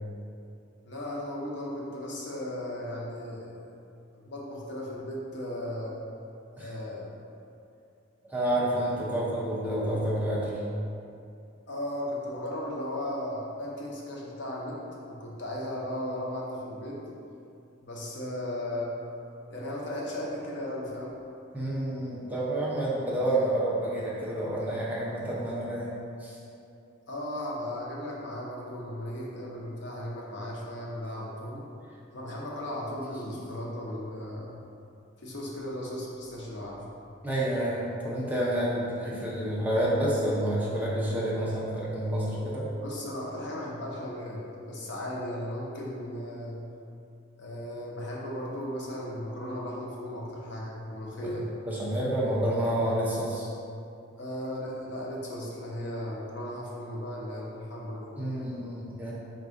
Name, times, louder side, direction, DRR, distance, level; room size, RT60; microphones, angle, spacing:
voice 1, 0.9-3.6 4.1-6.0 6.6-7.1 11.7-17.0 17.8-18.9 19.5-21.1 27.1-31.7 32.1-34.5 35.2-36.8 42.8-46.6 47.4-51.5 54.2-58.1 59.1-59.2, left 1 dB, 60° left, -4 dB, 0.6 m, -36 dB
voice 2, 8.2-10.6 21.5-25.9 26.2-26.4 33.3-33.4 37.2-42.7 51.2-51.3 51.7-53.5 58.2-59.1, right 1 dB, 10° right, -7 dB, 0.5 m, -29 dB
4.0 x 2.5 x 3.6 m, 2.6 s
head